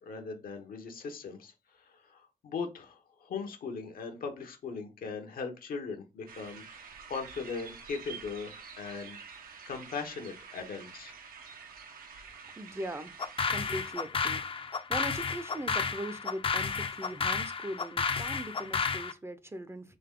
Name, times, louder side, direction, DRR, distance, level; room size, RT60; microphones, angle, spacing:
voice 1, 0.0-9.2 9.7-11.1, left 5 dB, 80° left, 1.1 m, -39 dB
sound 1, 6.3-13.9, right 6 dB, 80° right, 0.9 m, -48 dB
voice 2, 12.6-13.1 13.5-20.0, right 1 dB, 15° right, 0.5 m, -40 dB
sound 2, 13.2-19.1, left 5 dB, 40° left, 0.5 m, -32 dB
3.9 x 3.6 x 3.7 m
cardioid pair, 95°, 15 cm